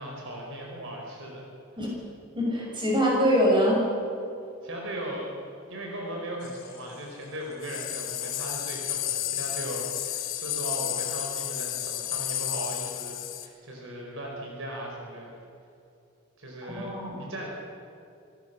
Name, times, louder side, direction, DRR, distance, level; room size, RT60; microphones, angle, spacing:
voice 1, 0.0-1.5 4.6-5.3 5.7-15.3 16.4-16.9 17.2-17.5, right 1 dB, 60° right, -1 dB, 4.9 m, -37 dB
voice 2, 2.3-3.8 16.8-17.2, equal, 25° right, -3 dB, 6.9 m, -23 dB
sound 1, 6.4-6.8 7.6-13.5, left 13 dB, 65° left, 1.6 m, -32 dB
25.5 x 17.0 x 7.0 m, 2.6 s
head